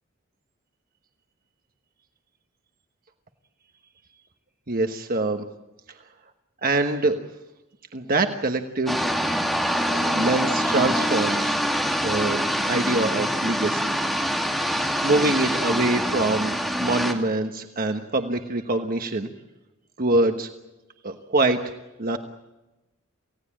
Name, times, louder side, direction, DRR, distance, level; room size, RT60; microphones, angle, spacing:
voice 1, 4.7-5.4 6.6-7.2 7.9-9.1 9.9-11.6 12.0-12.4 12.7-13.9 15.0-19.3 20.0-20.5 21.0-21.6 22.0-22.2, right 2 dB, 45° right, 6 dB, 1.2 m, -24 dB
sound 1, 8.9-17.1, equal, ahead, 2.5 m, -25 dB
28.0 x 17.0 x 8.7 m, 1.0 s
head